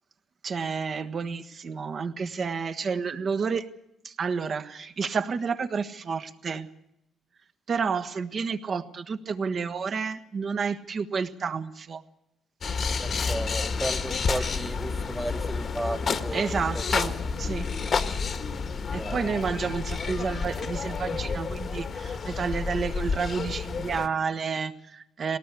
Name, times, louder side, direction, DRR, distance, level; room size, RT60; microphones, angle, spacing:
voice 1, 0.4-3.7 4.0-6.7 7.7-12.0 14.4-14.5 16.3-17.7 18.9-25.4, right 5 dB, 50° right, 9 dB, 1.4 m, -30 dB
sound 1, 12.6-24.1, left 5 dB, 50° left, 1.5 m, -30 dB
voice 2, 13.0-16.8 19.0-19.3, right 1 dB, 5° right, 9 dB, 1.0 m, -34 dB
20.5 x 18.5 x 8.4 m, 0.85 s
cardioid pair, 90°, 0 cm